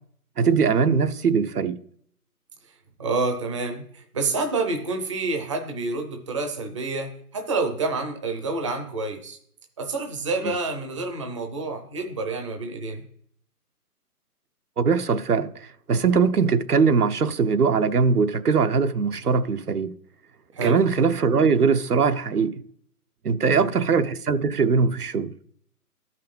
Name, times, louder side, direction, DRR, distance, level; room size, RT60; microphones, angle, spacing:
voice 1, 0.4-1.7 10.4-10.6 14.8-19.9 20.6-22.6 23.2-25.3, right 5 dB, 75° right, 1.1 m, -21 dB
voice 2, 3.0-9.4 9.8-13.0 20.6-20.8 23.4-23.7, right 3 dB, 20° right, 0.7 m, -28 dB
12.5 x 5.7 x 5.3 m
figure-of-eight pair, 155°, 46 cm